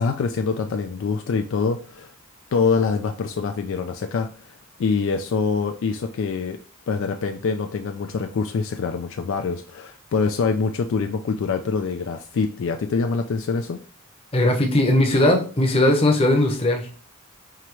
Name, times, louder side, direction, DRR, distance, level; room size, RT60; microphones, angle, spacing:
voice 1, 0.0-2.1 2.5-4.5 4.8-6.6 6.9-13.8, left 5 dB, 60° left, 6 dB, 0.3 m, -25 dB
voice 2, 14.3-16.9, left 1 dB, 25° left, 3 dB, 0.8 m, -19 dB
4.7 x 2.9 x 3.0 m, 0.38 s
head